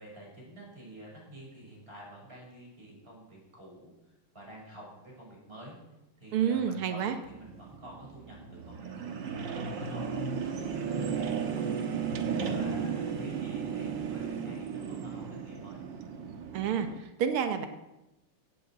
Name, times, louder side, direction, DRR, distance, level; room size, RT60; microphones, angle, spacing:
voice 1, 0.0-5.8 6.2-16.3, right 1 dB, 25° right, -3 dB, 6.3 m, -49 dB
voice 2, 6.3-7.2 16.5-16.9 17.2-17.7, right 8 dB, 85° right, 7 dB, 2.0 m, -28 dB
sound 1, 7.2-17.0, right 6 dB, 60° right, 1.9 m, -35 dB
16.5 x 8.4 x 7.7 m, 0.97 s
omnidirectional pair, 2.3 m